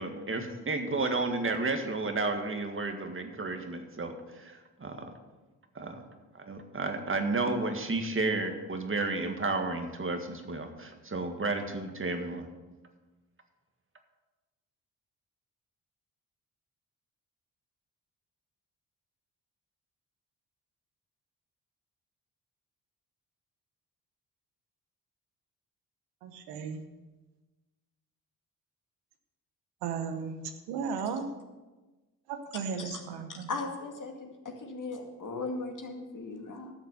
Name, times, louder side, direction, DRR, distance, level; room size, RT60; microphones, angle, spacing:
voice 1, 0.0-5.1 5.7-6.0 6.4-12.5, right 3 dB, 30° right, 6 dB, 1.8 m, -32 dB
voice 2, 26.2-26.8 29.8-31.3 32.3-33.5, right 6 dB, 85° right, 7 dB, 1.0 m, -35 dB
voice 3, 33.3-36.7, left 3 dB, 50° left, 3 dB, 2.2 m, -38 dB
11.5 x 6.7 x 6.7 m, 1.2 s
hypercardioid pair, 50°, 40 cm